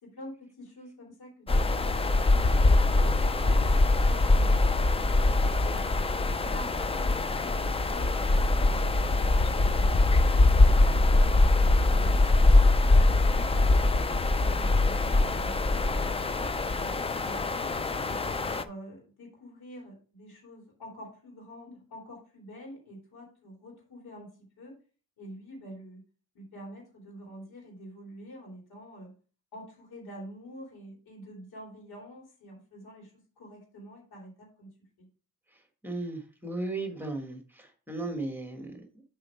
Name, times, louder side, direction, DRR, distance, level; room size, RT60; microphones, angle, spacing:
voice 1, 0.0-1.5 1.7-2.2 2.6-4.6 5.6-10.5 10.9-12.4 12.9-13.7 14.3-16.2 16.7-17.7 18.1-24.8 25.2-26.0 26.3-29.1 29.5-34.7 35.0-35.1, equal, 90° left, -2 dB, 3.2 m, -47 dB
sound 1, 1.5-18.6, left 2 dB, 20° left, 0.3 m, -23 dB
voice 2, 35.5-39.0, right 2 dB, 5° right, 4 dB, 1.4 m, -36 dB
7.6 x 4.4 x 4.5 m, 0.39 s
wide cardioid pair, 155°, 36 cm